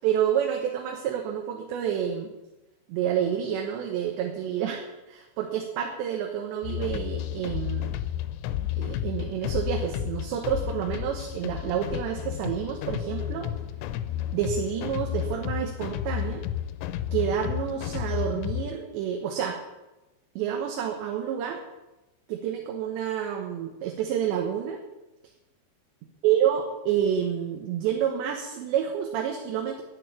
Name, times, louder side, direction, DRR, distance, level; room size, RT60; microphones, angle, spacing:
voice 1, 0.0-2.3 2.9-8.0 8.8-13.5 14.3-16.4 17.1-19.6 20.4-21.6 22.3-24.8 26.2-29.8, right 9 dB, 80° right, 2 dB, 3.4 m, -29 dB
sound 1, 6.6-18.8, left 12 dB, 80° left, 2.8 m, -32 dB
9.9 x 9.2 x 9.7 m, 1.0 s
omnidirectional pair, 5.2 m